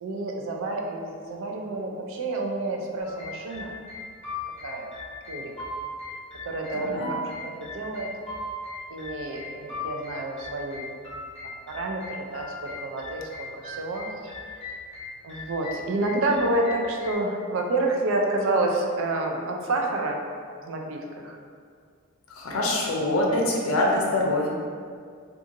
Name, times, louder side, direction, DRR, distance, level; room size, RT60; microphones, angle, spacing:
voice 1, 0.0-3.7 4.6-4.9 5.3-5.5 6.5-8.1 8.9-10.9 11.7-14.3 14.6-14.7 15.2-20.2 20.7-21.4, right 2 dB, 65° right, 1 dB, 0.4 m, -29 dB
sound 1, 3.0-17.1, left 2 dB, 30° left, 0.8 m, -38 dB
voice 2, 6.7-7.1 22.3-24.5, left 1 dB, 70° left, -2 dB, 0.5 m, -24 dB
2.5 x 2.4 x 2.8 m, 2.1 s
head